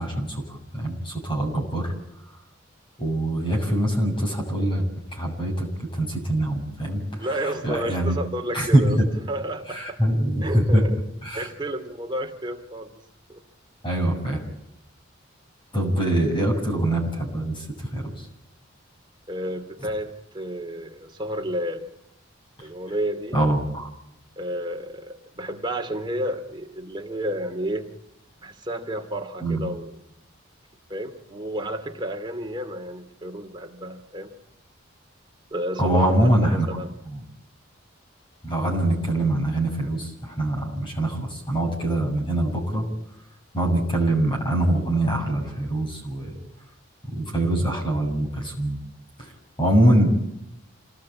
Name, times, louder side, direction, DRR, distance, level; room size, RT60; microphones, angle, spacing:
voice 1, 0.0-1.9 3.0-4.8 5.1-5.7 5.9-8.2 8.5-9.1 9.7-10.9 11.2-11.5 13.8-14.4 15.7-18.3 23.3-23.9 29.4-29.6 35.8-36.7 38.4-42.9 43.5-46.4 47.1-48.8 49.2-49.3 49.6-50.1, right 1 dB, 25° left, 0 dB, 7.0 m, -23 dB
voice 2, 7.2-9.0 9.3-10.0 10.4-10.9 11.3-13.0 13.3-13.4 19.3-21.9 22.6-23.4 24.4-27.9 28.4-29.9 30.9-34.3 35.5-36.9, right 1 dB, 20° right, 4 dB, 2.7 m, -31 dB
27.5 x 19.0 x 8.8 m, 0.84 s
head